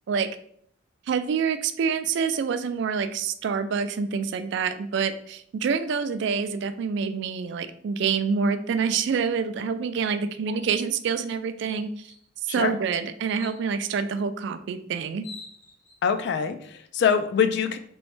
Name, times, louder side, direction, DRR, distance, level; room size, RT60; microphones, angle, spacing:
voice 1, 1.1-12.1 12.5-15.3, right 6 dB, 60° right, 10 dB, 0.3 m, -27 dB
sound 1, 10.6-10.8 11.2-11.3 11.6-12.2 13.2-13.6 14.7-14.8 15.1-16.0, left 3 dB, 40° left, 1.3 m, -45 dB
voice 2, 16.0-17.8, left 6 dB, 60° left, 9 dB, 0.3 m, -24 dB
3.1 x 3.1 x 3.1 m, 0.65 s
head